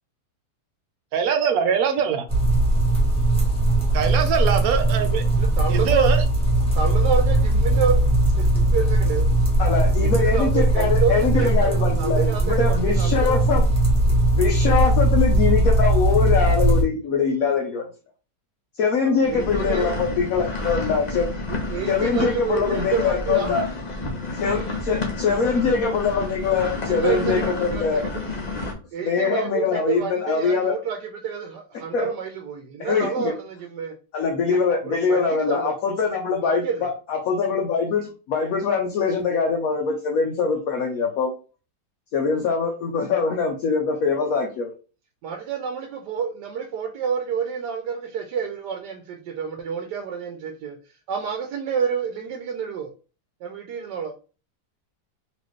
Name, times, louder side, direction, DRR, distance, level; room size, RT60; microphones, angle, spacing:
voice 1, 1.1-2.2 3.9-5.2 5.7-6.2, right 7 dB, 65° right, 1.0 m, -22 dB
sound 1, 2.3-16.8, right 1 dB, 5° left, 1.2 m, -19 dB
voice 2, 5.4-6.1 6.7-8.0 8.4-9.4 10.0-13.3 19.0-19.9 21.5-23.6 25.3-25.4 26.9-28.1 28.9-33.9 34.5-34.6 34.8-35.7 36.4-36.9 45.2-50.8 51.1-52.9 53.4-54.1, right 6 dB, 85° right, 1.2 m, -29 dB
voice 3, 9.6-13.7 14.3-17.8 18.8-21.3 21.9-23.7 24.4-28.0 29.0-30.7 31.9-32.1 32.8-33.3 34.1-41.3 42.1-44.7, left 5 dB, 65° left, 1.1 m, -23 dB
sound 2, 19.2-28.7, left 3 dB, 35° left, 0.7 m, -30 dB
4.2 x 3.1 x 3.1 m
omnidirectional pair, 1.8 m